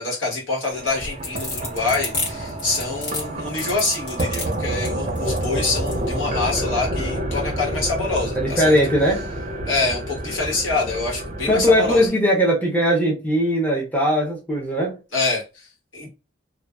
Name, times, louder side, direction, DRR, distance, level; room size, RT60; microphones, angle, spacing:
voice 1, 0.0-8.7 9.6-12.1 15.1-15.4 15.9-16.1, left 3 dB, 85° left, 1.2 m, -25 dB
sound 1, 0.7-12.1, right 1 dB, 35° right, 0.5 m, -29 dB
sound 2, 0.9-6.0, left 2 dB, 55° left, 1.2 m, -30 dB
voice 2, 8.4-9.3 11.5-14.9, equal, 10° left, 0.6 m, -19 dB
2.5 x 2.2 x 2.2 m
head